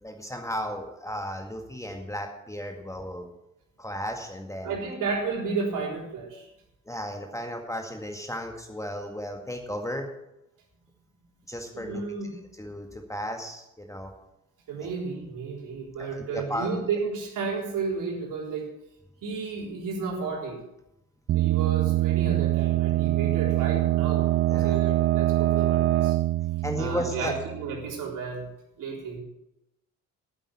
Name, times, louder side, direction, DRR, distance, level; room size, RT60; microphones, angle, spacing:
voice 1, 0.0-3.3 3.8-4.7 6.9-10.1 11.5-12.0 12.6-14.1 14.8-14.9 16.0-16.7 24.5-24.8 26.6-27.3, equal, 10° left, 3 dB, 2.0 m, -34 dB
voice 2, 4.6-6.5 11.7-12.3 14.7-18.7 19.2-20.6 21.3-26.2 26.8-28.5 28.8-29.2, right 4 dB, 50° right, -1 dB, 3.9 m, -32 dB
sound 1, 21.3-27.9, right 16 dB, 30° right, 0.5 m, -24 dB
14.0 x 8.6 x 6.0 m, 0.86 s
figure-of-eight pair, 50°, 39 cm